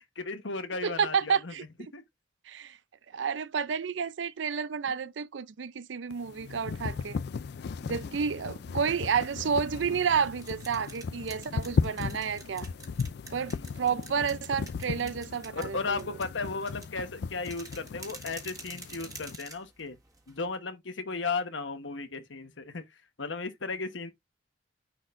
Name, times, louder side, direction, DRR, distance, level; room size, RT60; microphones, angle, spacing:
voice 1, 0.0-1.5 1.9-2.0 8.0-8.2 13.5-13.7 15.5-20.0 20.3-22.8 23.2-24.1, left 4 dB, 85° left, 1.1 m, -35 dB
voice 2, 0.8-1.6 2.5-2.8 3.1-7.2 7.8-12.7 13.3-16.0, right 6 dB, 75° right, 0.5 m, -30 dB
sound 1, 6.1-19.4, left 5 dB, 60° left, 0.4 m, -36 dB
sound 2, 10.2-20.6, right 3 dB, 20° right, 1.6 m, -48 dB
9.8 x 4.3 x 2.5 m
head